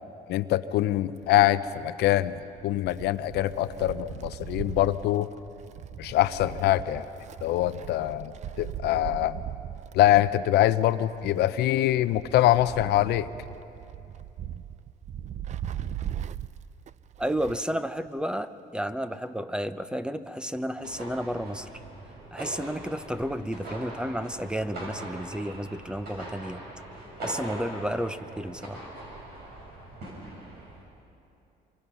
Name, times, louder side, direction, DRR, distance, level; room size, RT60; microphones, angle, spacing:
voice 1, 0.3-5.3 6.0-7.1 7.4-9.4 9.9-13.3, left 13 dB, 80° left, 13 dB, 0.7 m, -24 dB
Wind, 1.2-17.8 18.1-18.2 19.1-19.2, right 10 dB, 45° right, 0.5 m, -39 dB
voice 2, 17.2-21.7 22.3-26.6 27.2-28.9, equal, 5° right, 12 dB, 0.7 m, -32 dB
sound 1, 20.8-30.8, right 1 dB, 75° right, 6.8 m, -41 dB
26.0 x 24.5 x 5.6 m, 2.8 s
cardioid pair, 110°, 17 cm